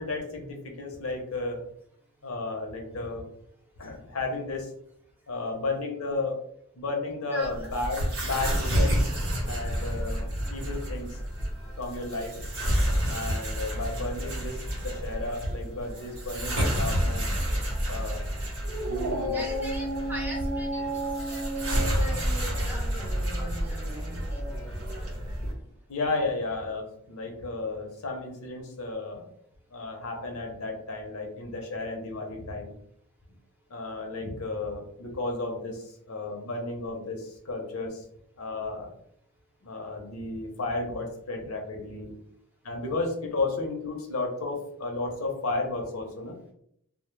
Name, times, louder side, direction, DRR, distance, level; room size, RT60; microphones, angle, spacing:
voice 1, 0.0-1.6 2.2-3.3 3.8-4.7 5.3-6.4 6.8-9.1 9.4-10.2 10.5-11.2 11.8-12.5 13.1-17.3 17.9-18.3 18.8-19.4 25.9-29.3 29.7-32.7 33.7-38.0 38.4-38.9 39.6-42.1 42.6-46.3, left 3 dB, 75° left, 2 dB, 0.6 m, -33 dB
voice 2, 7.3-7.7 19.3-23.0 23.4-23.8 24.3-24.4 24.9-25.0, equal, 10° right, -3 dB, 0.4 m, -42 dB
sound 1, 7.4-25.5, equal, 85° right, 0.9 m, -30 dB
Dog, 18.6-25.3, right 1 dB, 65° right, 0.6 m, -34 dB
2.1 x 2.0 x 3.0 m, 0.70 s
head